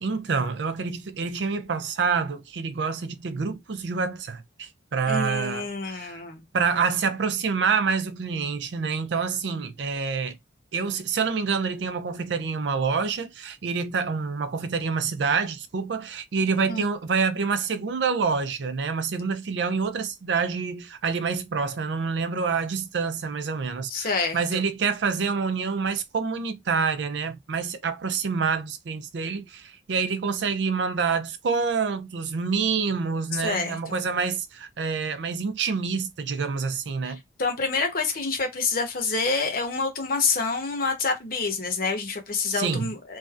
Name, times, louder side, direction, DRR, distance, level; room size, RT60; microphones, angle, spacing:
voice 1, 0.0-6.2 6.5-10.4 10.7-37.2 42.5-42.9, right 5 dB, 70° right, 0.4 m, -27 dB
voice 2, 5.1-6.4 16.6-16.9 23.9-24.6 33.4-34.0 37.0-37.1 37.4-43.2, left 4 dB, 50° left, 0.9 m, -27 dB
3.1 x 2.6 x 2.4 m
head